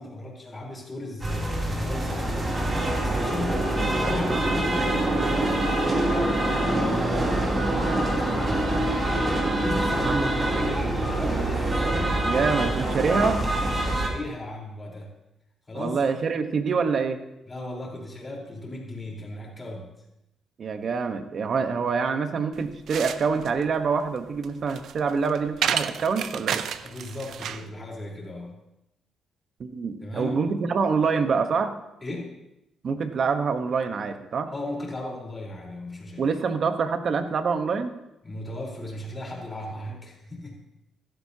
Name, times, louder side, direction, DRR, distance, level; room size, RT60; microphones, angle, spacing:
voice 1, 0.0-7.3 7.5-8.8 9.1-11.8 13.8-15.1 15.7-16.0 17.5-19.9 26.8-28.6 30.0-30.4 32.0-32.4 34.5-36.3 38.2-40.6, left 2 dB, 25° left, -2 dB, 4.1 m, -36 dB
sound 1, 1.2-14.1, right 1 dB, 30° right, 3.1 m, -25 dB
voice 2, 12.2-13.4 15.7-17.2 20.6-26.6 29.6-31.7 32.8-34.5 36.2-37.9, right 5 dB, 50° right, 8 dB, 1.1 m, -26 dB
sound 2, 22.5-27.7, right 8 dB, 70° right, 0.5 m, -31 dB
15.5 x 13.0 x 2.9 m, 0.89 s
cardioid pair, 90°, 0 cm